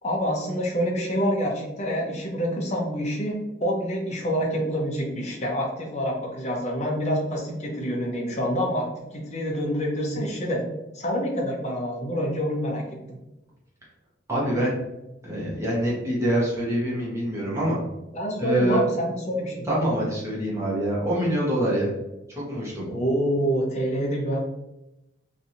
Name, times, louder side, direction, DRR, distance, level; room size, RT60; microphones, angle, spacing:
voice 1, 0.0-10.7 10.9-13.2 18.1-19.7 22.9-24.4, equal, 35° left, -1 dB, 0.7 m, -27 dB
voice 2, 14.3-14.8 15.2-17.8 18.4-18.8 19.7-21.9 22.3-22.8, right 1 dB, 15° right, -6 dB, 1.1 m, -25 dB
3.1 x 2.7 x 2.6 m, 0.95 s
head